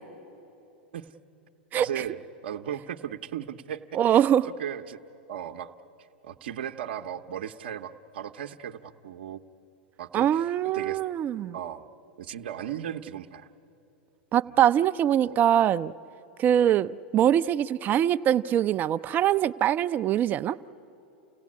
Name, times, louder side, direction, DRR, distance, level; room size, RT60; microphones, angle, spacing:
voice 1, 1.8-5.0 5.3-5.7 6.2-9.4 10.0-11.0 11.5-11.9 12.2-13.5 14.4-14.5 15.2-15.3, right 9 dB, 70° right, 5 dB, 0.8 m, -37 dB
voice 2, 3.9-4.5 10.1-11.5 14.3-15.9 16.4-20.6, right 10 dB, 35° right, 13 dB, 0.4 m, -23 dB
29.5 x 17.0 x 8.5 m, 2.9 s
hypercardioid pair, 105°, 6 cm